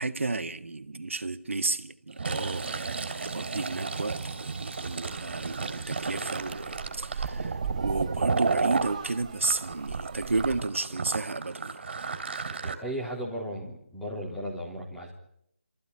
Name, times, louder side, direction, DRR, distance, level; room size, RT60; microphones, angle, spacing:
voice 1, 0.0-11.8, right 3 dB, 75° right, 1.8 m, -32 dB
Fill (with liquid), 2.1-8.9 9.4-12.7, right 4 dB, 55° right, 3.6 m, -32 dB
sound 1, 5.1-10.6, right 6 dB, 35° right, 1.6 m, -39 dB
voice 2, 12.6-15.1, equal, 5° left, 3.6 m, -35 dB
27.5 x 15.0 x 9.8 m
figure-of-eight pair, 165°, 7 cm